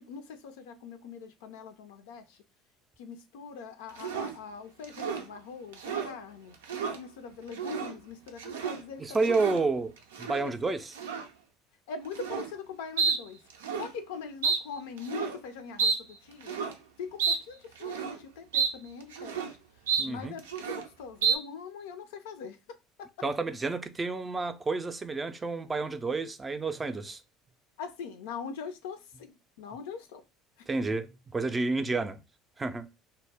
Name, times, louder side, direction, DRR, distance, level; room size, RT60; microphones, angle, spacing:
voice 1, 0.0-2.4 3.0-6.6 6.9-9.3 10.3-10.6 11.9-13.4 13.8-16.6 17.0-19.5 20.1-22.6 23.0-23.1 27.8-30.2, left 6 dB, 75° left, 0.4 m, -42 dB
sound 1, 4.0-4.4 4.8-5.3 5.7-6.1 6.5-7.0 7.5-7.9 8.3-8.8 9.1-9.6 10.1-10.4 10.9-11.3 12.1-12.5 13.0-13.2 13.5-13.9 14.4-14.6 15.0-15.4 15.8-16.0 16.4-16.7 17.2-17.4 17.8-18.2 18.5-18.7 19.0-19.5 19.9-20.1 20.4-20.9 21.2-21.4, right 6 dB, 80° right, 0.4 m, -30 dB
voice 2, 9.0-9.9 10.2-10.9 20.0-20.4 23.2-27.2 30.7-32.2 32.6-32.9, right 3 dB, 20° right, 0.4 m, -30 dB
2.1 x 2.1 x 3.3 m
hypercardioid pair, 70°, 0 cm